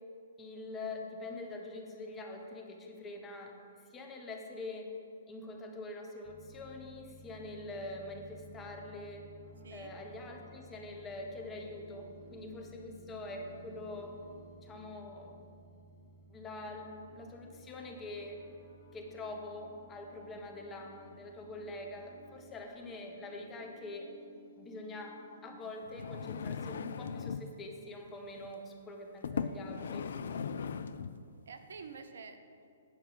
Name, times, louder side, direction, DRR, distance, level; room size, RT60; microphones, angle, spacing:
voice 1, 0.4-3.6 3.9-4.9 5.3-9.3 9.7-14.2 14.6-15.3 16.3-18.4 18.9-24.1 24.6-30.1, left 2 dB, 20° left, 2 dB, 1.1 m, -44 dB
sound 1, 6.2-22.6, right 1 dB, 10° right, 1.5 m, -57 dB
sound 2, 9.4-25.5, left 1 dB, 40° left, 1.4 m, -59 dB
voice 2, 20.5-20.9 29.1-29.4 29.7-29.9 31.5-32.7, right 5 dB, 65° right, 8 dB, 0.6 m, -51 dB
sound 3, 25.9-27.5 28.4-28.6 29.2-31.2 31.9-32.0, left 6 dB, 60° left, 0.3 m, -38 dB
8.8 x 5.5 x 5.4 m, 2.4 s
figure-of-eight pair, 120°, 0 cm